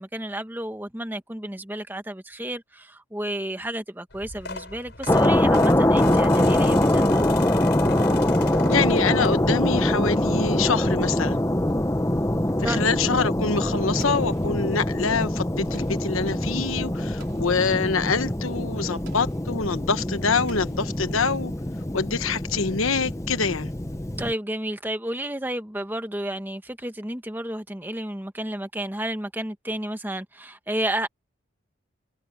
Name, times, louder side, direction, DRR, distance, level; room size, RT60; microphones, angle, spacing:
voice 1, 0.0-7.0 12.6-12.9 24.2-31.1, right 1 dB, 10° right, 1.2 m, -31 dB
sound 1, 4.1-9.7 10.2-10.5 11.7-11.8 12.0-12.1 12.5-12.6, left 4 dB, 55° left, 6.4 m, -37 dB
sound 2, 5.1-24.3, left 1 dB, 15° left, 0.9 m, -23 dB
voice 2, 8.7-11.4 12.6-21.5 21.9-23.7, left 4 dB, 85° left, 1.2 m, -25 dB
Explosion, 14.0-14.9 15.7-16.3 17.2-17.7 19.1-19.6 20.5-21.4, right 4 dB, 55° right, 5.7 m, -51 dB
head